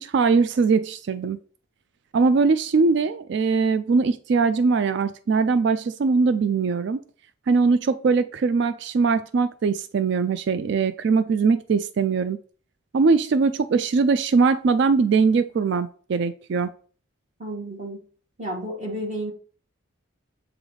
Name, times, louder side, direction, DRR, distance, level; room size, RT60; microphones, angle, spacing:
voice 1, 0.0-1.4 2.1-7.0 7.5-12.4 12.9-16.7, right 4 dB, 55° right, 12 dB, 0.3 m, -21 dB
voice 2, 17.4-18.0 18.4-19.3, right 1 dB, 35° right, -1 dB, 1.8 m, -31 dB
7.8 x 3.9 x 3.2 m, 0.41 s
head